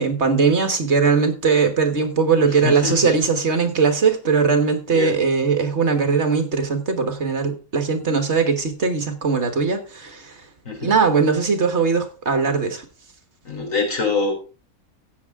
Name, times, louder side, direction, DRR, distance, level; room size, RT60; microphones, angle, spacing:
voice 1, 0.0-10.4 10.8-12.8, right 5 dB, 50° right, 1.6 m, -20 dB
voice 2, 2.6-3.2 4.9-5.1 10.7-10.9 13.4-14.3, left 4 dB, 60° left, 3.9 m, -24 dB
14.0 x 8.4 x 3.6 m
omnidirectional pair, 1.5 m